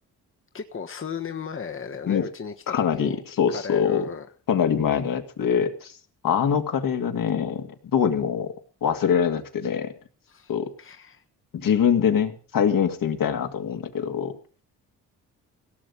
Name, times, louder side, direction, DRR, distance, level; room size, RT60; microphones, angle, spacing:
voice 1, 0.5-3.2 3.5-4.3 10.3-10.5 10.8-11.2, left 6 dB, 35° left, 5 dB, 1.4 m, -35 dB
voice 2, 2.7-4.0 4.5-5.9 6.2-7.7 7.9-8.5 8.8-9.9 10.5-10.7 11.5-14.4, left 7 dB, 65° left, 5 dB, 2.5 m, -23 dB
17.5 x 7.0 x 8.5 m, 0.42 s
supercardioid pair, 55°, 36 cm